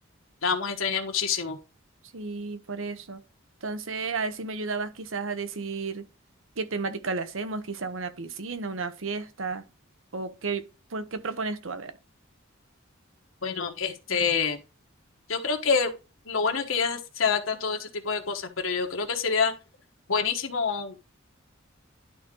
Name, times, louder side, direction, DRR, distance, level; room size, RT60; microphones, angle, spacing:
voice 1, 0.4-1.6 13.4-14.6 15.3-15.9 16.3-19.5 20.1-21.0, left 5 dB, 85° left, 1.2 m, -27 dB
voice 2, 2.1-3.2 3.6-6.0 6.6-9.6 10.1-10.6 10.9-11.9, right 4 dB, 80° right, 0.9 m, -32 dB
11.5 x 3.9 x 3.8 m
head